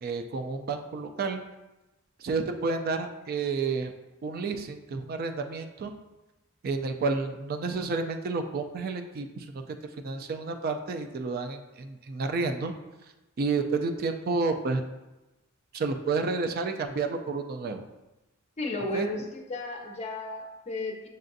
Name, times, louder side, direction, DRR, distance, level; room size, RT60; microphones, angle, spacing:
voice 1, 0.0-1.4 2.2-3.9 4.2-5.9 6.6-9.6 10.0-12.7 13.4-14.8 15.7-17.8 18.9-19.1, right 4 dB, 45° right, 6 dB, 0.3 m, -30 dB
voice 2, 18.6-21.1, left 2 dB, 35° left, 2 dB, 0.6 m, -33 dB
6.4 x 2.5 x 2.6 m, 1.0 s
head